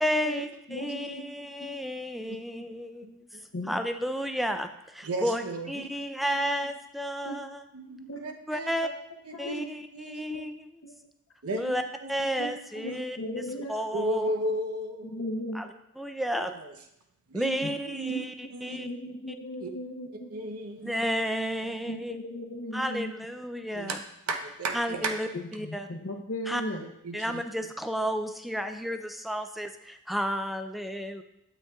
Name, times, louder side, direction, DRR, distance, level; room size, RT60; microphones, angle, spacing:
voice 1, 0.0-3.3 3.7-7.6 8.5-8.9 9.4-10.7 11.6-11.8 12.1-14.3 15.5-15.7 16.0-16.5 17.3-18.9 20.8-22.2 22.7-24.0 24.7-25.9 26.5-26.6 27.1-31.2, equal, ahead, 7 dB, 0.4 m, -32 dB
voice 2, 0.7-2.0 3.5-3.8 7.2-7.4 8.1-8.2 9.3-9.7 10.3-10.4 10.8-10.9 12.4-12.5 12.7-13.7 15.1-15.6 17.6-17.7 18.1-18.2 18.7-20.3 21.7-23.2 25.3-26.8, left 1 dB, 60° left, -1 dB, 0.8 m, -37 dB
voice 3, 5.0-6.4 7.7-8.8 9.2-9.6 9.9-10.2 11.4-11.7 12.0-12.3 12.8-13.1 13.9-15.2 16.4-16.7 17.3-18.8 19.6-19.7 20.3-20.9 23.7-24.0 24.3-25.3 27.0-27.4, right 1 dB, 75° right, 5 dB, 0.8 m, -34 dB
9.0 x 7.5 x 2.3 m, 0.80 s
head